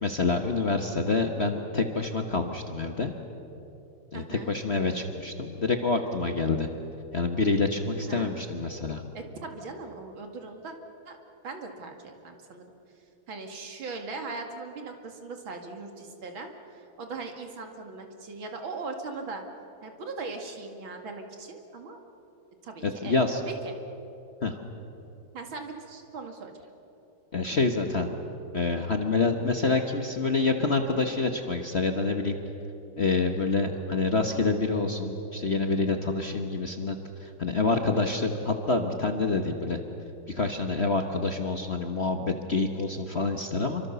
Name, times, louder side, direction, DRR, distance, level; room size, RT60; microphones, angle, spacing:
voice 1, 0.0-3.1 4.1-6.7 7.1-9.0 22.8-23.4 24.4-24.5 27.3-28.1 28.5-32.4 33.0-39.8 40.3-43.8, left 3 dB, 35° left, 5 dB, 1.2 m, -27 dB
voice 2, 4.1-4.5 8.1-8.3 9.1-10.7 11.1-11.2 11.4-12.7 13.3-19.4 19.8-22.0 22.6-23.2 23.5-23.7 25.3-26.5, right 3 dB, 65° right, 4 dB, 2.9 m, -39 dB
28.0 x 24.5 x 6.9 m, 2.9 s
omnidirectional pair, 2.3 m